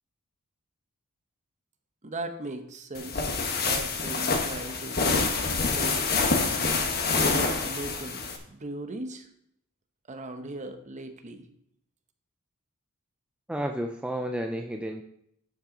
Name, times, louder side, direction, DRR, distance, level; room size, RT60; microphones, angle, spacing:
voice 1, 2.0-3.4 3.6-5.1 5.5-6.1 7.1-9.3 10.1-11.4, right 2 dB, 35° right, 6 dB, 0.9 m, -38 dB
sound 1, 2.9-8.4, left 4 dB, 45° left, 1.2 m, -26 dB
voice 2, 13.5-15.0, right 1 dB, 5° right, 3 dB, 0.4 m, -31 dB
11.5 x 5.8 x 3.8 m, 0.73 s
head